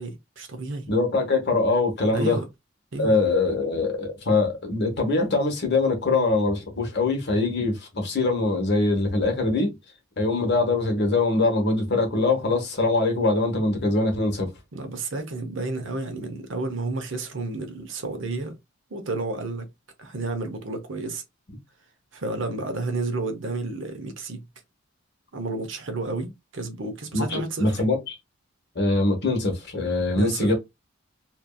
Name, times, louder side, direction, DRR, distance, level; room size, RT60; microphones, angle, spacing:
voice 1, 0.0-0.9 2.1-2.4 2.9-3.1 14.7-18.6 18.9-19.7 20.0-21.2 22.1-24.4 25.3-27.8 30.1-30.5, right 3 dB, 60° right, 0.7 m, -31 dB
voice 2, 0.9-2.4 3.0-9.7 10.2-14.5 27.1-28.0 28.7-30.5, left 3 dB, 50° left, 1.0 m, -23 dB
2.8 x 2.5 x 2.2 m
head